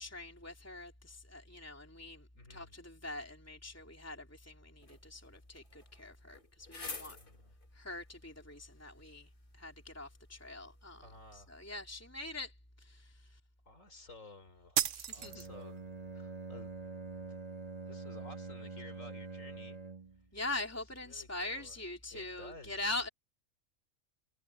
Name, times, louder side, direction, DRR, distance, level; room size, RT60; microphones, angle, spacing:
voice 1, 0.0-7.2 7.7-11.1 11.3-13.4 14.9-15.4 20.3-23.1, left 2 dB, 10° left, 3.2 m, -43 dB
voice 2, 2.3-2.7 7.0-7.5 11.0-11.6 13.7-16.7 17.3-17.4 17.8-19.8 21.0-21.8 22.1-22.8, left 2 dB, 85° left, 4.1 m, -54 dB
sound 1, 4.8-11.9, left 3 dB, 40° left, 2.2 m, -52 dB
sound 2, 14.8-15.8, right 11 dB, 75° right, 1.0 m, -34 dB
Bowed string instrument, 15.2-20.3, right 4 dB, 30° right, 2.5 m, -45 dB
omnidirectional pair, 1.3 m